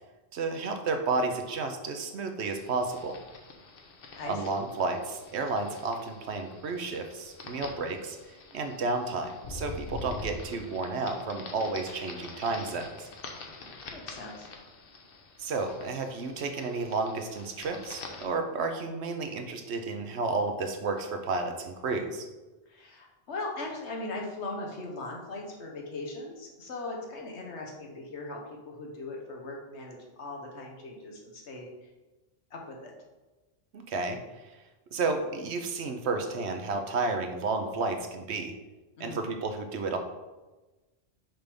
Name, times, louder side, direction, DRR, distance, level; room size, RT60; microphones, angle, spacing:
voice 1, 0.3-3.2 4.3-13.1 15.4-22.3 33.7-34.2 34.9-38.5 39.0-40.0, right 3 dB, 80° right, 5 dB, 1.0 m, -32 dB
sound 1, 2.5-18.3, left 3 dB, 60° left, 0.9 m, -46 dB
voice 2, 13.5-14.5 22.7-31.9 32.5-32.9 39.0-39.3, left 2 dB, 85° left, 0 dB, 1.4 m, -39 dB
5.8 x 3.4 x 5.2 m, 1.2 s
omnidirectional pair, 1.1 m